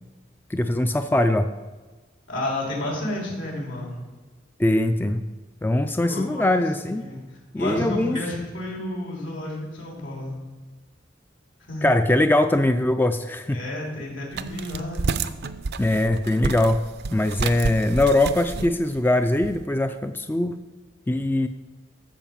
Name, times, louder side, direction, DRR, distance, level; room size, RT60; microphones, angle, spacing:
voice 1, 0.5-1.5 4.6-5.3 5.6-7.0 7.5-8.2 11.8-13.6 15.8-16.8 17.1-20.6 21.1-21.5, left 1 dB, 10° left, 8 dB, 0.3 m, -21 dB
voice 2, 2.3-3.9 6.0-6.5 6.8-7.2 7.5-10.4 11.7-11.9 13.5-15.0, left 1 dB, 75° left, -2 dB, 3.8 m, -31 dB
sound 1, 14.3-19.6, right 4 dB, 55° right, 0.5 m, -30 dB
12.5 x 4.9 x 7.3 m, 1.3 s
head